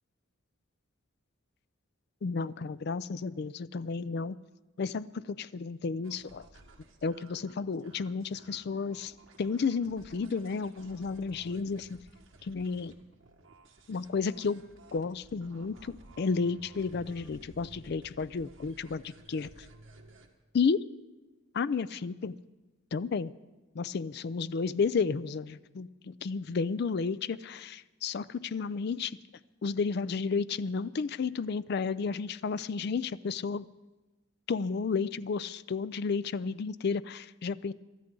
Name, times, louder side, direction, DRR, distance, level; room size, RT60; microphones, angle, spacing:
voice 1, 2.2-4.4 4.8-6.5 7.0-9.1 9.4-12.0 12.4-13.0 13.9-14.6 14.9-19.5 20.5-20.8 21.5-22.4 22.9-23.3 23.7-29.2 29.6-33.7 34.5-37.7, left 5 dB, 50° left, 0.4 m, -32 dB
sound 1, 6.0-20.3, right 2 dB, 70° right, 1.6 m, -56 dB
22.5 x 12.5 x 3.8 m
head